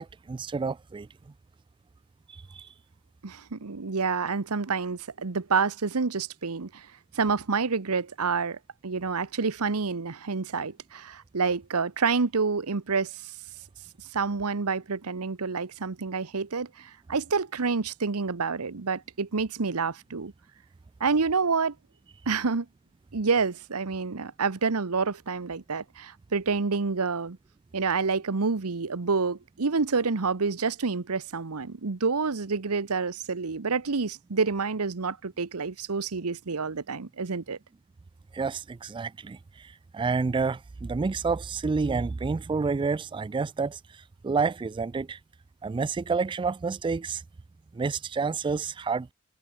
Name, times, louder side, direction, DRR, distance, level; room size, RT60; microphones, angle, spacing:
voice 1, 0.0-1.3 2.3-2.7 38.3-45.2 45.6-47.2 47.7-49.1, right 4 dB, 20° right, 0.3 m, -29 dB
voice 2, 3.2-6.9 7.1-13.3 14.1-20.3 21.0-21.7 22.3-22.7 23.1-27.4 27.7-37.6, right 4 dB, 80° right, 1.0 m, -28 dB
head